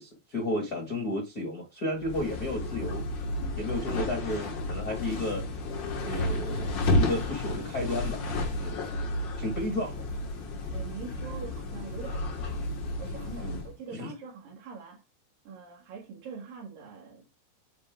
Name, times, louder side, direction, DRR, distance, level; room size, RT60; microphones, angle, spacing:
voice 1, 0.0-3.0 3.5-5.4 6.0-8.2 8.5-8.8 9.4-10.1 13.4-13.6 13.9-14.1, left 1 dB, 40° left, 1.4 m, -33 dB
sound 1, 2.0-13.7, left 1 dB, 65° left, 1.1 m, -32 dB
voice 2, 10.7-12.7 13.0-15.0 15.5-17.3, right 5 dB, 60° right, 3.6 m, -43 dB
9.7 x 4.7 x 3.5 m
omnidirectional pair, 4.7 m